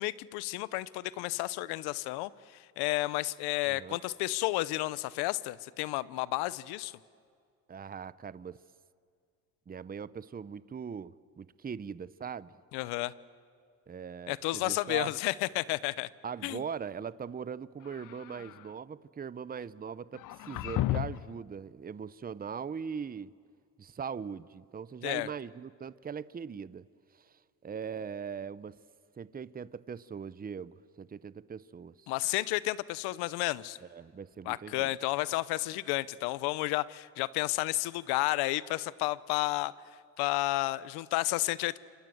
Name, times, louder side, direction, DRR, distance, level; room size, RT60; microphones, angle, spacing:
voice 1, 0.0-2.3 2.8-6.9 12.7-13.1 14.3-16.1 16.4-16.6 25.0-25.3 32.1-33.8 34.4-39.7 40.2-41.8, left 19 dB, 90° left, 19 dB, 0.8 m, -31 dB
voice 2, 3.7-4.0 7.7-8.6 9.7-12.5 13.9-15.1 16.2-23.3 23.8-26.9 27.6-28.8 29.2-31.9 33.9-34.9, right 6 dB, 25° right, 18 dB, 0.8 m, -40 dB
sound 1, 17.8-18.7 20.1-21.4, left 15 dB, 60° left, 0.6 m, -34 dB
29.5 x 25.5 x 7.9 m, 2.2 s
supercardioid pair, 75°, 37 cm